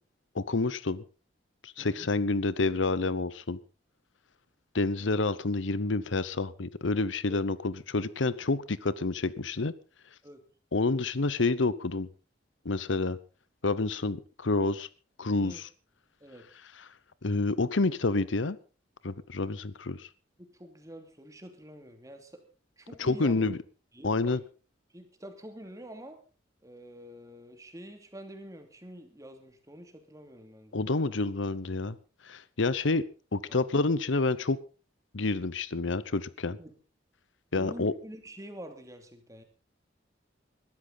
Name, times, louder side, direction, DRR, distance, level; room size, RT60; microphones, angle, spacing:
voice 1, 0.3-1.0 1.6-3.6 4.7-9.7 10.7-12.1 12.6-13.2 13.6-14.9 15.2-15.7 17.2-18.6 19.0-20.1 23.0-23.6 24.0-24.4 30.7-32.0 32.3-33.0 33.3-34.6 35.1-36.6 37.5-37.9, left 3 dB, 85° left, 17 dB, 0.9 m, -28 dB
voice 2, 20.4-22.4 22.8-23.4 23.9-24.4 24.9-26.2 26.6-30.8 33.5-33.6 36.6-36.8 37.5-39.4, equal, 20° right, 6 dB, 2.7 m, -47 dB
21.0 x 13.5 x 4.1 m, 0.36 s
head